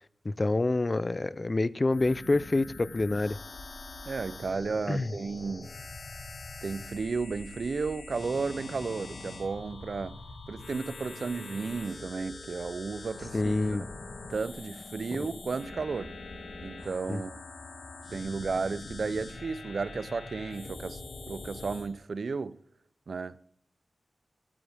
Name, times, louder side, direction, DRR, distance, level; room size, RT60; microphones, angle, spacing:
voice 1, 0.2-3.4 4.9-5.1 13.3-13.8 15.2-15.3 17.1-17.2, left 2 dB, 35° left, 0.4 m, -27 dB
sound 1, 1.9-21.9, left 3 dB, 80° left, 2.0 m, -44 dB
voice 2, 4.0-5.7 6.6-10.2 10.5-13.5 13.8-13.9 14.3-16.2 16.6-17.4 18.1-21.0 21.3-22.6 23.1-23.5, right 4 dB, 65° right, 0.4 m, -33 dB
17.0 x 8.8 x 3.4 m
wide cardioid pair, 75°, 0 cm